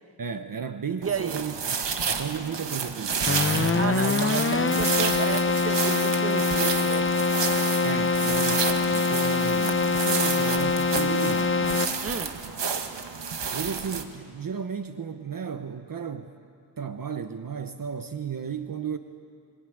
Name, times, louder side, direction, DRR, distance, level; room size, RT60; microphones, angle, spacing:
voice 1, 0.2-1.5 2.0-4.0 7.8-11.6 13.5-16.3 16.8-19.0, right 7 dB, 50° right, 8 dB, 1.0 m, -34 dB
voice 2, 1.0-1.4 3.7-7.1 12.0-12.4, right 5 dB, 35° right, 9 dB, 1.2 m, -32 dB
sound 1, 1.0-14.0, right 6 dB, 85° right, 1.7 m, -30 dB
Keyboard (musical), 3.3-12.2, left 4 dB, 30° left, 0.9 m, -24 dB
25.5 x 21.0 x 9.4 m, 2.3 s
wide cardioid pair, 105°, 42 cm